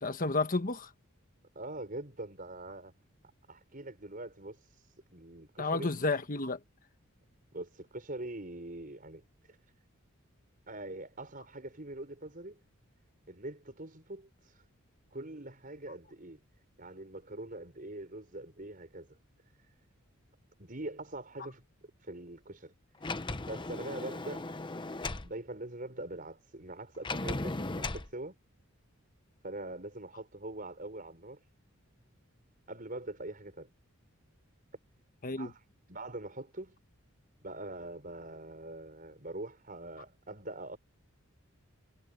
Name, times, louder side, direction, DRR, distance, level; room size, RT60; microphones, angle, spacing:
voice 1, 0.0-0.9 5.6-6.6 35.2-35.5, left 3 dB, 40° left, 1.3 m, -31 dB
voice 2, 1.6-2.9 3.5-4.6 5.1-5.9 7.5-9.6 10.7-12.6 13.3-14.3 15.1-16.4 16.8-19.2 20.6-21.6 22.0-22.7 23.5-24.6 25.2-28.4 29.4-31.4 32.7-33.7 35.3-35.6 35.9-36.8 37.4-40.8, right 2 dB, 40° right, 5.6 m, -43 dB
Sliding door, 23.0-25.3 27.0-28.1, left 2 dB, 20° left, 0.8 m, -37 dB
head